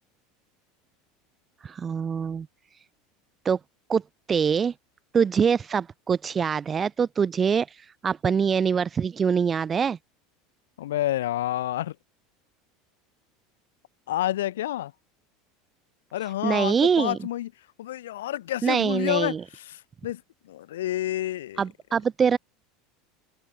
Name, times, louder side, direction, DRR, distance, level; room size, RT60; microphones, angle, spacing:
voice 1, 1.6-2.5 3.4-3.6 3.9-4.0 4.3-4.7 5.1-10.0 16.4-17.2 18.6-19.4 21.6-22.4, right 6 dB, 25° right, 1.2 m, -24 dB
voice 2, 10.8-12.0 14.1-14.9 16.1-17.5 17.8-21.6, left 13 dB, 65° left, 6.7 m, -29 dB
open air
figure-of-eight pair, 75°, 0 cm